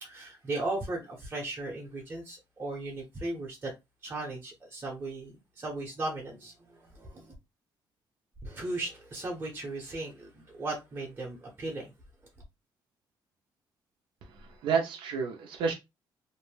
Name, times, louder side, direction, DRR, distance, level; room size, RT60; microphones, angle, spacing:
voice 1, 0.0-3.7 4.0-7.3 8.4-11.9, right 2 dB, 25° right, 0.8 m, -37 dB
voice 2, 14.2-15.7, right 5 dB, 85° right, 0.6 m, -30 dB
2.6 x 2.0 x 3.2 m
cardioid pair, 140°, 8 cm